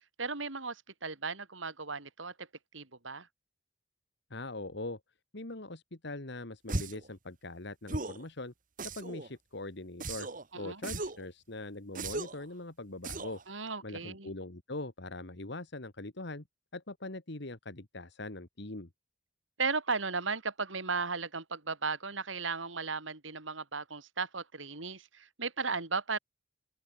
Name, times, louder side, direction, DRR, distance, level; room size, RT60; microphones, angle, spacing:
voice 1, 0.2-2.5 2.7-3.3 10.5-10.8 13.5-14.3 19.6-26.2, right 4 dB, 85° right, 3.8 m, -36 dB
voice 2, 4.3-5.0 5.3-8.5 8.9-10.3 10.6-13.4 13.8-16.4 16.7-18.9, left 2 dB, 60° left, 2.1 m, -42 dB
sound 1, 6.7-7.1 7.9-8.3 8.8-9.3 10.0-10.4 10.8-11.3 12.0-12.4 13.0-13.4, right 2 dB, 45° right, 2.5 m, -37 dB
open air
head